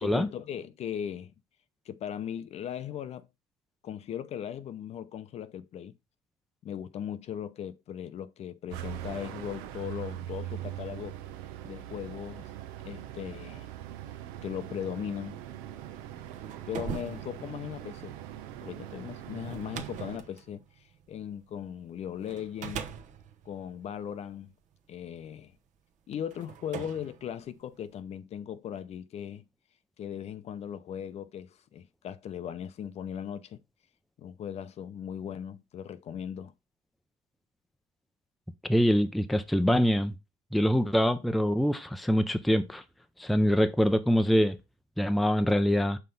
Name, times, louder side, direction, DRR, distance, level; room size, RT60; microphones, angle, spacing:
voice 1, 0.0-1.3 1.9-3.3 3.8-5.9 6.6-11.2 11.6-12.5 12.8-13.7 14.4-15.4 16.7-18.2 18.6-22.9 23.4-24.5 24.9-25.5 26.1-29.4 30.0-33.6 34.2-36.5, left 9 dB, 45° left, 0.6 m, -38 dB
sound 1, 8.7-20.2, right 12 dB, 90° right, 0.7 m, -41 dB
sound 2, 16.3-21.7 22.3-24.7 25.6-25.7 26.3-28.0, right 8 dB, 55° right, 0.9 m, -43 dB
voice 2, 38.7-40.1 40.5-42.8 43.2-44.6 45.0-46.0, equal, ahead, 0.5 m, -24 dB
5.8 x 3.3 x 5.3 m
cardioid pair, 105°, 15 cm